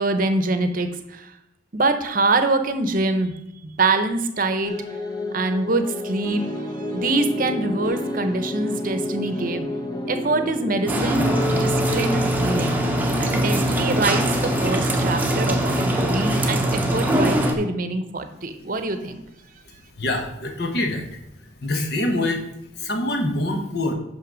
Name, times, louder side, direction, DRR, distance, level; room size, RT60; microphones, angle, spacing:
voice 1, 0.0-1.4 1.7-3.4 3.6-4.7 5.3-9.7 10.1-12.8 13.2-19.2, right 2 dB, 50° right, 8 dB, 0.8 m, -24 dB
sound 1, 4.6-13.1, left 1 dB, 20° left, 0.9 m, -29 dB
sound 2, 10.9-17.5, right 1 dB, 10° right, 0.8 m, -22 dB
voice 2, 20.0-21.1 21.6-22.5 22.8-23.9, left 1 dB, 60° left, 4 dB, 1.2 m, -24 dB
5.9 x 5.8 x 6.1 m, 0.85 s
head